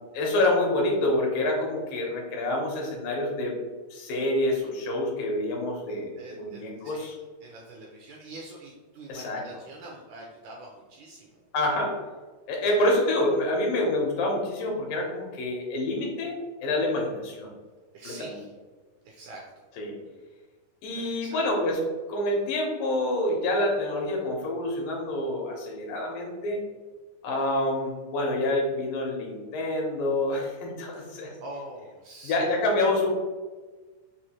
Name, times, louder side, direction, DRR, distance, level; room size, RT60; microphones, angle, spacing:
voice 1, 0.1-3.5 3.9-7.1 9.1-9.4 11.5-12.0 12.5-17.5 18.1-18.4 19.8-19.9 20.8-21.8 22.1-26.6 27.2-31.3 32.2-33.1, left 1 dB, 80° left, 0 dB, 2.5 m, -27 dB
voice 2, 6.2-7.1 7.4-11.4 17.9-18.5 19.0-19.6 20.9-21.5 30.9-32.6, right 2 dB, 85° right, -2 dB, 1.8 m, -45 dB
6.2 x 2.5 x 2.8 m, 1.3 s
omnidirectional pair, 4.0 m